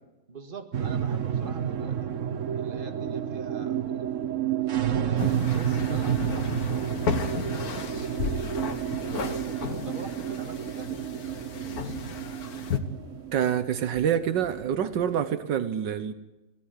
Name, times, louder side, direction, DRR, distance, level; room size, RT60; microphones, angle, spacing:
voice 1, 0.3-2.1 2.6-4.1 4.8-8.6 9.1-11.3 11.6-12.3, right 3 dB, 30° right, 6 dB, 2.1 m, -44 dB
sound 1, 0.7-15.4, right 9 dB, 50° right, 1.3 m, -30 dB
sound 2, 5.2-12.8, left 5 dB, 55° left, 1.9 m, -34 dB
sound 3, 6.5-15.3, right 1 dB, 15° left, 6.1 m, -50 dB
voice 2, 13.3-16.1, right 9 dB, 75° right, 12 dB, 1.7 m, -27 dB
24.5 x 17.0 x 9.7 m, 1.0 s
omnidirectional pair, 1.9 m